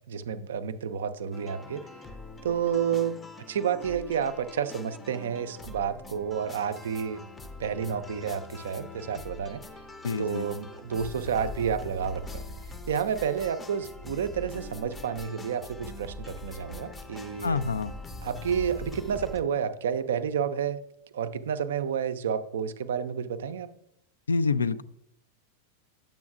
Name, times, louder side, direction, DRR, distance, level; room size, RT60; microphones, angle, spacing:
voice 1, 0.1-1.8 2.4-3.2 3.5-7.2 7.6-9.6 10.2-12.4 12.9-17.6 18.2-20.8 21.1-23.7, right 7 dB, 60° right, 12 dB, 0.4 m, -30 dB
sound 1, 1.3-19.4, left 2 dB, 15° left, 0.6 m, -43 dB
voice 2, 10.0-10.5 17.4-17.9 24.3-24.8, left 4 dB, 75° left, 14 dB, 0.3 m, -27 dB
10.5 x 7.6 x 2.4 m, 0.73 s
figure-of-eight pair, 90°, 0 cm